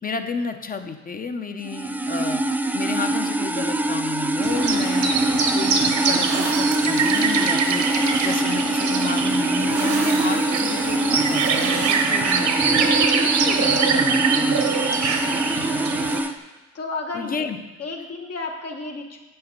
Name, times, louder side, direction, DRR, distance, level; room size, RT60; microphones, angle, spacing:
voice 1, 0.0-2.4 2.7-5.1 5.5-7.9 8.2-13.0 13.3-14.6 15.0-15.2 17.1-17.6, left 5 dB, 30° left, 7 dB, 0.7 m, -31 dB
sound 1, 1.6-16.3, right 2 dB, 5° right, 0.4 m, -23 dB
sound 2, 4.4-16.2, right 5 dB, 65° right, 1.0 m, -24 dB
voice 2, 16.7-17.5 17.8-19.2, left 3 dB, 55° left, 1 dB, 1.2 m, -34 dB
7.8 x 5.6 x 5.2 m, 1.2 s
cardioid pair, 90°, 30 cm